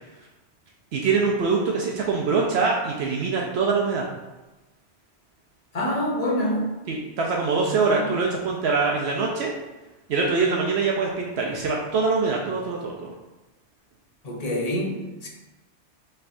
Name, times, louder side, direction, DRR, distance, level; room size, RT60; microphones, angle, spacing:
voice 1, 0.9-4.1 6.9-9.5 10.1-13.1, right 4 dB, 75° right, -1 dB, 0.8 m, -24 dB
voice 2, 5.7-6.7 7.6-8.1 14.2-15.3, equal, 40° left, 0 dB, 0.7 m, -27 dB
5.7 x 3.3 x 2.6 m, 1.1 s
omnidirectional pair, 1.1 m